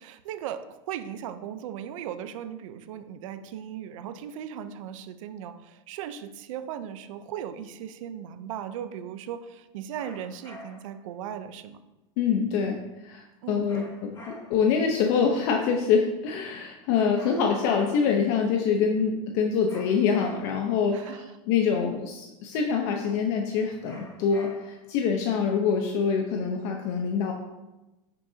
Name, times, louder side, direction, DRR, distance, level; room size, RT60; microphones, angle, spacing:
voice 1, 0.0-11.8 13.4-13.7 20.9-21.3, right 9 dB, 75° right, 10 dB, 0.8 m, -37 dB
sound 1, 10.0-11.0 13.7-14.8 17.1-18.2 19.7-20.7 23.8-24.9, left 2 dB, 25° left, 3.0 m, -47 dB
voice 2, 12.2-12.8 13.0-27.3, left 6 dB, 55° left, 2 dB, 1.0 m, -25 dB
10.5 x 6.7 x 2.9 m, 1.0 s
supercardioid pair, 140°, 17 cm